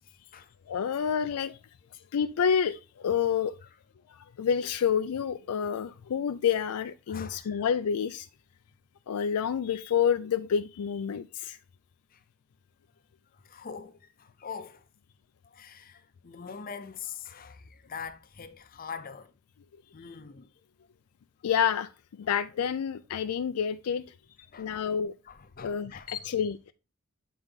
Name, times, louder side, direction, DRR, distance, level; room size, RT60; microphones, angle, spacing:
voice 1, 0.7-1.6 2.1-3.6 4.1-8.3 9.1-11.6 21.4-24.0 24.6-25.1 25.6-26.7, left 7 dB, 85° left, 0.4 m, -28 dB
voice 2, 7.1-7.7 12.1-12.2 13.4-14.8 15.5-19.3 19.9-20.5 24.5-24.8 25.3-26.3, left 6 dB, 40° left, 0.6 m, -43 dB
8.7 x 3.9 x 3.6 m
head